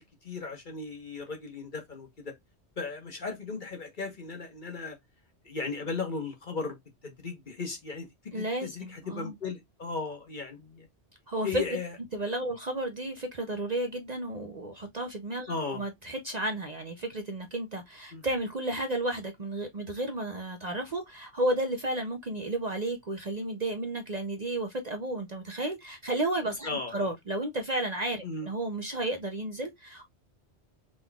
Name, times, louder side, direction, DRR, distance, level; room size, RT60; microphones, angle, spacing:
voice 1, 0.0-2.3 2.8-5.0 5.4-6.8 7.0-8.1 8.3-10.9 11.4-11.9 15.5-15.8 18.1-18.2 26.6-27.1 28.2-28.5, left 4 dB, 45° left, 1.3 m, -36 dB
voice 2, 8.3-9.3 11.3-11.8 12.1-30.0, right 1 dB, 45° right, 0.7 m, -32 dB
5.3 x 3.8 x 2.3 m
omnidirectional pair, 1.2 m